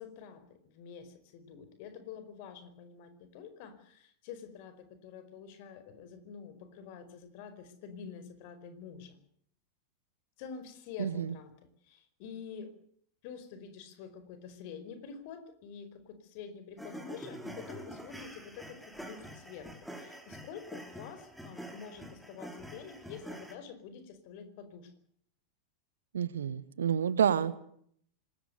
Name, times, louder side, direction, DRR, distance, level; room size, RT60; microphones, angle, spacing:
voice 1, 0.0-9.2 10.4-11.5 11.8-12.7 13.2-24.9, left 6 dB, 45° left, 11 dB, 4.9 m, -47 dB
voice 2, 11.0-11.3 26.1-27.6, right 8 dB, 65° right, 16 dB, 1.6 m, -29 dB
sound 1, 16.8-23.5, equal, ahead, 4.7 m, -46 dB
26.5 x 20.0 x 6.8 m, 0.65 s
figure-of-eight pair, 90°, 0 cm